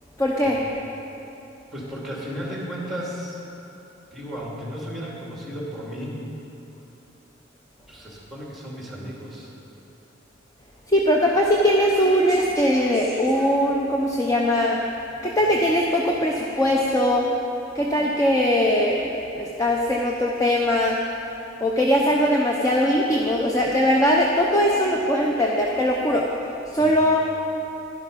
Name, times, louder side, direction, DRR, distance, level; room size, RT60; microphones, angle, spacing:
voice 1, 0.2-0.6 10.9-14.8 15.2-17.3 17.7-19.1 19.3-21.0 21.6-26.3 26.7-27.3, equal, 15° left, -2 dB, 0.7 m, -20 dB
voice 2, 1.7-3.4 4.1-6.2 7.9-9.5 26.8-27.0, equal, ahead, -4 dB, 2.4 m, -34 dB
11.5 x 11.5 x 5.3 m, 2.9 s
head